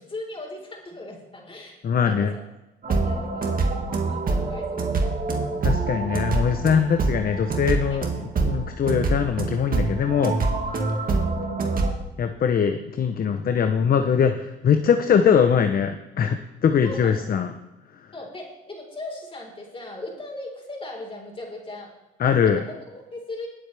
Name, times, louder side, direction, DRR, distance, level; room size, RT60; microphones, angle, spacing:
voice 1, 0.0-2.4 2.9-6.0 7.9-8.1 10.2-10.6 16.8-17.2 18.1-21.9 22.4-23.5, left 2 dB, 25° left, -1 dB, 4.2 m, -39 dB
voice 2, 1.8-2.3 5.6-10.3 12.2-17.5 22.2-22.6, left 7 dB, 50° left, 7 dB, 0.8 m, -22 dB
sound 1, 2.8-11.9, right 3 dB, 45° right, 1.9 m, -25 dB
19.5 x 7.8 x 3.4 m, 0.98 s
cardioid pair, 90°, 20 cm